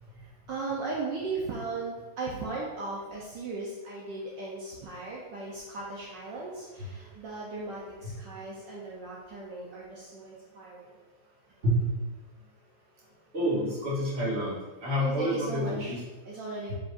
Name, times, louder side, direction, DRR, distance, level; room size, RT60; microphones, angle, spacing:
voice 1, 0.1-10.9 15.0-15.9 16.2-16.7, right 3 dB, 70° right, -5 dB, 1.5 m, -37 dB
voice 2, 13.3-16.0, equal, 35° right, -7 dB, 2.0 m, -29 dB
7.4 x 5.2 x 2.6 m, 1.2 s
omnidirectional pair, 2.1 m